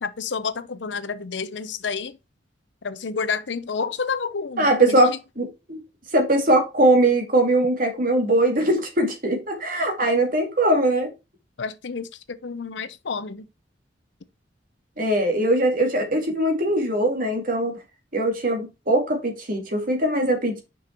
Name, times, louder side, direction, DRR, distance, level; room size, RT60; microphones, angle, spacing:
voice 1, 0.0-2.2 2.8-5.2 11.6-13.5, left 5 dB, 75° left, 0.7 m, -30 dB
voice 2, 4.6-5.8 6.1-11.1 15.0-17.7 18.1-20.6, right 1 dB, 50° right, 2.3 m, -21 dB
6.3 x 5.3 x 4.3 m
head